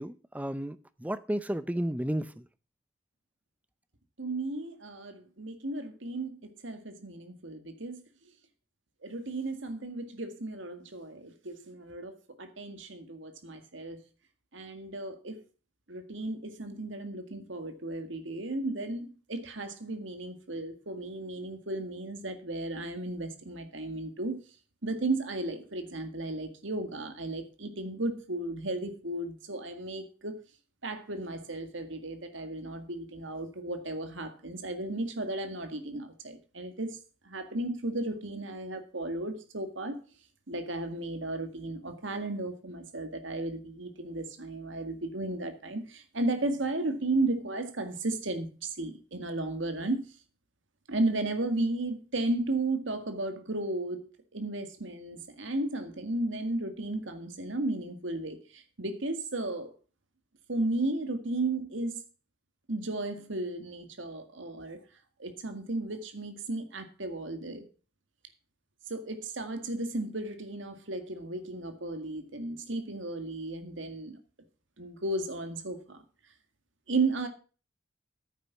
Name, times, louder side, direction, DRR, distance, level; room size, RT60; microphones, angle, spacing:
voice 1, 0.0-2.4, right 1 dB, 10° right, 0.6 m, -33 dB
voice 2, 4.2-6.4 6.6-8.0 9.0-14.0 14.5-15.4 15.9-24.4 24.8-30.4 30.8-37.0 37.2-40.0 40.5-50.1 50.9-54.0 54.3-59.7 60.5-62.0 62.7-64.8 65.2-67.7 68.9-74.2 74.8-76.0 76.9-77.3, right 2 dB, 75° right, 2.0 m, -34 dB
10.0 x 8.3 x 5.9 m
head